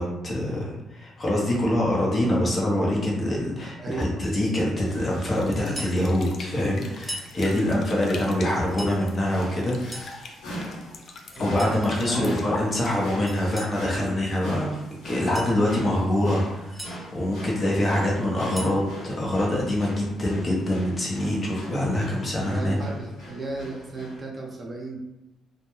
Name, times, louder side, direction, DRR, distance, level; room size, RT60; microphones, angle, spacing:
voice 1, 0.0-10.4 11.3-16.9 17.1-22.8, left 1 dB, 35° left, -3 dB, 0.7 m, -25 dB
voice 2, 3.8-4.2 7.4-7.9 11.3-12.4 13.9-14.2 22.4-25.0, right 2 dB, 35° right, -1 dB, 0.7 m, -35 dB
sound 1, 4.8-24.2, equal, 90° left, 0.8 m, -42 dB
sound 2, 5.3-13.5, left 3 dB, 55° left, 0.3 m, -42 dB
sound 3, 5.6-6.0 6.9-7.3 8.5-9.0 9.7-10.2 11.3-11.8 13.3-13.8 15.1-15.6 16.4-16.9 18.2-18.8, right 1 dB, ahead, 0.6 m, -39 dB
2.2 x 2.2 x 3.0 m, 0.91 s
cardioid pair, 90°, 0 cm